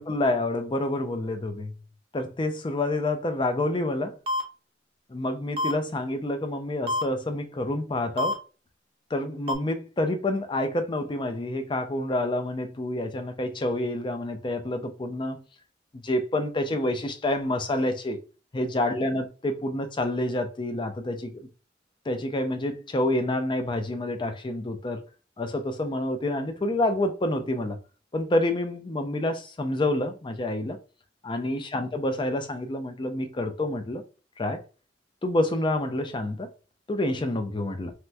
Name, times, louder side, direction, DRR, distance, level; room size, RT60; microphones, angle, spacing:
voice 1, 0.0-1.7 2.1-4.2 5.1-8.4 9.1-15.4 15.9-18.2 18.5-21.5 22.1-25.0 25.4-27.8 28.1-30.8 31.2-34.0 34.4-34.6 35.2-36.5 36.9-37.9, left 1 dB, 25° left, 0.5 m, -28 dB
sound 1, 4.3-4.4 5.6-5.7 6.9-7.0 8.2-8.3 9.5-9.6, left 1 dB, 30° right, 0.6 m, -26 dB
3.0 x 3.0 x 2.2 m
head